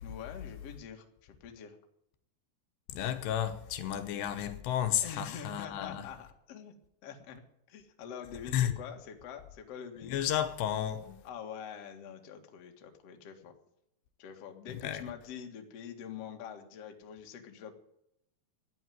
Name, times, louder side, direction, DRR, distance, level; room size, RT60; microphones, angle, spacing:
voice 1, 0.0-1.8 5.0-6.7 7.0-7.4 7.7-10.2 11.2-13.5 14.2-17.7, left 7 dB, 50° left, 2.2 m, -45 dB
voice 2, 2.9-6.1 8.5-8.7 10.1-11.2 14.7-15.0, left 10 dB, 80° left, 3.2 m, -32 dB
14.0 x 9.5 x 9.3 m
omnidirectional pair, 4.9 m